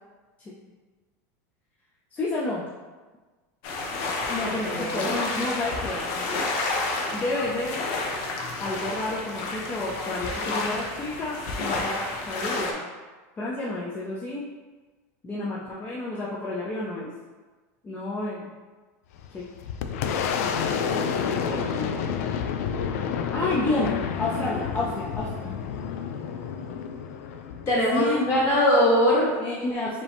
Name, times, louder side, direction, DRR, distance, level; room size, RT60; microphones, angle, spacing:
voice 1, 2.1-2.6 4.3-6.1 7.1-7.8 8.6-12.9 13.4-14.4 15.2-17.1 17.8-18.5 19.3-19.4 20.4-21.9 23.3-25.5 27.9-28.3 29.4-30.0, left 2 dB, 20° left, -6 dB, 0.6 m, -30 dB
sound 1, 3.6-12.7, left 3 dB, 55° left, 0.8 m, -30 dB
voice 2, 4.4-5.1 27.7-29.3, left 1 dB, 35° left, -6 dB, 1.1 m, -22 dB
Boom, 19.1-28.5, left 7 dB, 75° left, 0.4 m, -29 dB
5.0 x 2.8 x 3.5 m, 1.3 s
supercardioid pair, 145°, 8 cm